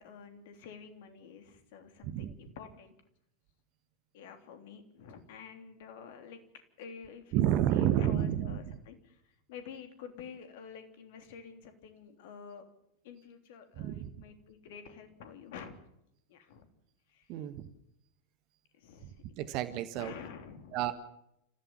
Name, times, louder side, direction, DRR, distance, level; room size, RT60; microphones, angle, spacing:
voice 1, 0.0-2.9 4.1-6.4 6.8-7.4 7.7-12.6 13.0-15.8 16.3-16.7 17.1-17.5 18.7-19.5 20.0-20.8, left 6 dB, 55° left, 7 dB, 3.2 m, -49 dB
voice 2, 7.3-8.6 13.8-14.1 17.3-17.7 19.4-20.1 20.7-20.9, right 11 dB, 45° right, 12 dB, 1.4 m, -30 dB
29.0 x 15.5 x 7.2 m, 0.77 s
figure-of-eight pair, 85°, 0 cm